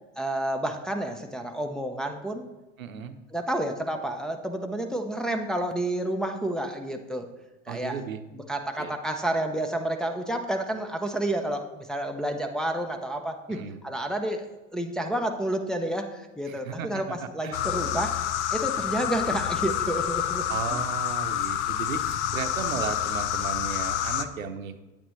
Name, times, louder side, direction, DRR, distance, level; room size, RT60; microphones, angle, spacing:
voice 1, 0.2-2.5 3.3-7.3 7.7-8.0 8.3-13.6 13.8-14.5 14.7-18.2 18.5-20.8, right 1 dB, ahead, 2 dB, 0.6 m, -30 dB
voice 2, 2.8-3.2 7.7-8.2 8.8-8.9 13.5-13.8 16.5-17.7 20.5-24.8, right 6 dB, 85° right, 10 dB, 0.8 m, -35 dB
sound 1, 17.5-24.2, left 10 dB, 60° left, 0.7 m, -28 dB
8.8 x 8.4 x 3.1 m, 1.1 s
hypercardioid pair, 95°, 40 cm